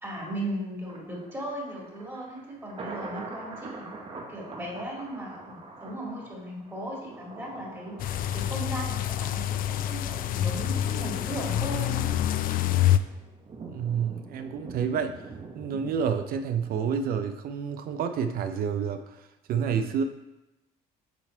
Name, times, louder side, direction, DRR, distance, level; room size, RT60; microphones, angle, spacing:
voice 1, 0.0-3.9 4.3-8.0 8.3-12.1, right 1 dB, 15° right, -3 dB, 2.1 m, -37 dB
Thunder, 0.8-18.0 18.3-18.4, right 3 dB, 35° right, 0.9 m, -45 dB
sound 1, 8.0-13.0, left 12 dB, 60° left, 0.4 m, -27 dB
voice 2, 13.7-15.2 15.5-20.0, right 7 dB, 60° right, 8 dB, 0.5 m, -29 dB
7.2 x 4.0 x 4.4 m, 0.96 s
cardioid pair, 110°, 17 cm